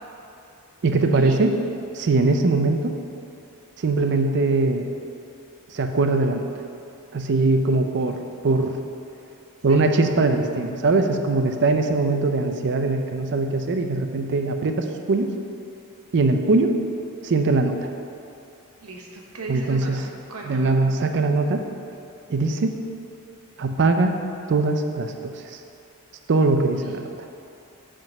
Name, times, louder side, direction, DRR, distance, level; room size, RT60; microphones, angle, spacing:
voice 1, 0.8-1.5 1.9-2.9 3.8-4.8 5.7-6.4 7.1-8.8 9.6-15.3 16.1-16.7 17.2-17.7 19.5-20.0 20.4-21.6 22.3-22.7 23.6-24.1 24.5-25.6 26.3-27.0, right 3 dB, 55° right, 6 dB, 0.5 m, -21 dB
voice 2, 18.8-20.7 26.8-26.9, right 2 dB, 80° right, 0 dB, 1.1 m, -37 dB
7.7 x 3.8 x 5.9 m, 2.6 s
head